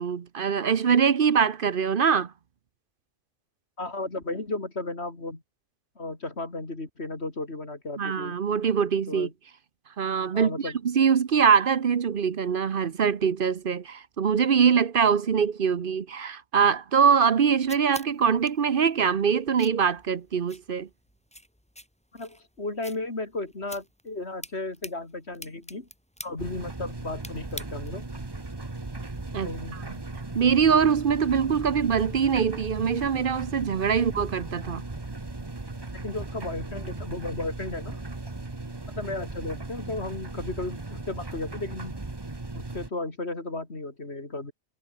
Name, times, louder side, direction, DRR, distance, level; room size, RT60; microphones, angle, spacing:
voice 1, 0.0-2.3 8.0-9.3 10.0-20.9 29.3-29.8 30.3-34.8, right 7 dB, 45° right, 0.9 m, -23 dB
voice 2, 3.8-5.4 6.0-8.4 9.1-9.3 10.3-10.8 22.1-25.9 26.2-28.1 29.4-29.8 35.9-38.0 38.9-42.0 42.5-44.5, left 2 dB, 50° left, 3.8 m, -34 dB
sound 1, 17.1-28.1, equal, 5° left, 4.1 m, -47 dB
sound 2, 26.4-42.9, right 2 dB, 20° right, 1.3 m, -37 dB
omnidirectional pair, 1.4 m